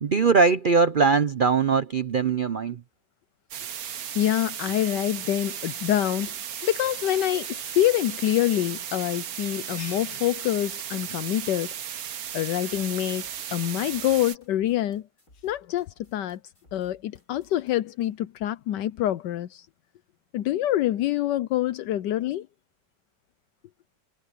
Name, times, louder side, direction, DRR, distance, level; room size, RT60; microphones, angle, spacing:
voice 1, 0.0-2.8, right 5 dB, 80° right, 0.4 m, -21 dB
sound 1, 3.5-14.4, right 9 dB, 60° right, 1.3 m, -35 dB
voice 2, 4.1-6.3 6.6-11.7 12.3-15.0 15.4-16.4 16.7-19.7 20.3-22.5, left 13 dB, 80° left, 1.3 m, -26 dB
sound 2, 12.7-18.1, left 1 dB, 50° left, 8.5 m, -59 dB
omnidirectional pair, 1.9 m